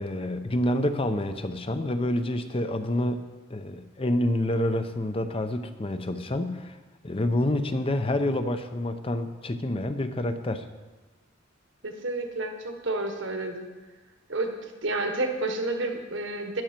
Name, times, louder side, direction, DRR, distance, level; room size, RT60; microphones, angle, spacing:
voice 1, 0.0-3.2 3.5-6.8 7.0-10.6, left 1 dB, 30° left, 9 dB, 0.7 m, -28 dB
voice 2, 11.8-13.7 14.3-16.6, right 2 dB, 65° right, 5 dB, 1.4 m, -30 dB
12.5 x 10.5 x 4.4 m, 1.2 s
head